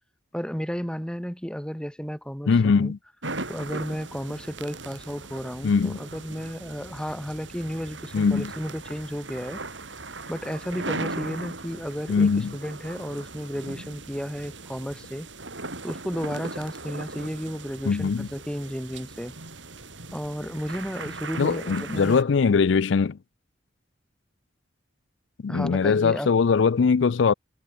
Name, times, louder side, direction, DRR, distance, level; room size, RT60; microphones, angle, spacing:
voice 1, 0.3-2.9 3.5-9.6 10.3-15.3 15.8-19.3 20.1-22.2 25.5-26.3, equal, 5° left, 1.8 m, -33 dB
voice 2, 2.5-3.0 5.6-6.0 8.1-8.5 12.1-12.5 17.9-18.3 21.4-23.2 25.4-27.3, left 5 dB, 75° left, 0.4 m, -21 dB
sound 1, 3.2-22.2, right 3 dB, 75° right, 7.5 m, -38 dB
head